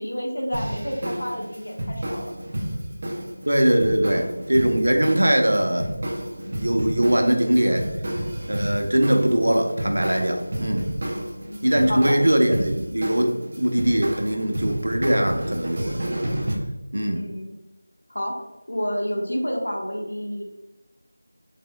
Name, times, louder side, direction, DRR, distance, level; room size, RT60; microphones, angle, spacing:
voice 1, 0.0-2.3 11.5-12.2 17.1-17.5 18.1-18.3 18.7-20.4, equal, 80° left, -1 dB, 1.3 m, -29 dB
sound 1, 0.5-16.5, right 1 dB, 25° right, 0.6 m, -31 dB
voice 2, 3.5-5.9 6.4-7.8 8.5-10.9 11.6-16.3 16.9-17.2, right 1 dB, 80° right, 3 dB, 0.9 m, -21 dB
5.3 x 3.7 x 2.3 m, 1.0 s
figure-of-eight pair, 180°, 0 cm